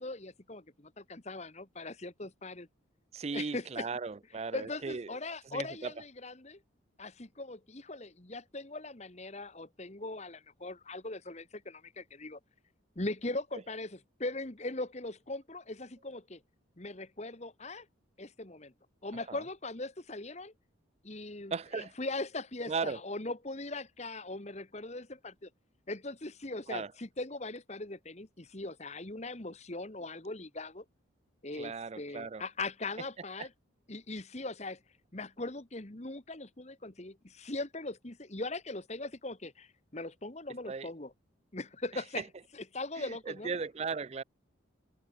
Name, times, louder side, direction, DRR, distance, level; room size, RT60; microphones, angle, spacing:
voice 1, 0.0-2.7 3.3-3.9 4.5-6.6 7.0-12.4 12.9-16.4 16.8-17.8 18.2-18.7 19.0-20.5 21.0-25.5 25.9-30.8 31.4-33.5 33.9-34.8 35.1-41.1 41.5-42.2 42.5-43.5, left 2 dB, 35° left, 1.5 m, -40 dB
voice 2, 3.1-5.1 5.5-5.9 19.3-19.4 21.5-21.9 22.7-23.0 26.7-26.9 31.6-32.4 33.4-33.5 40.7-40.9 41.9-42.2 43.0-44.2, right 4 dB, 30° right, 0.4 m, -37 dB
head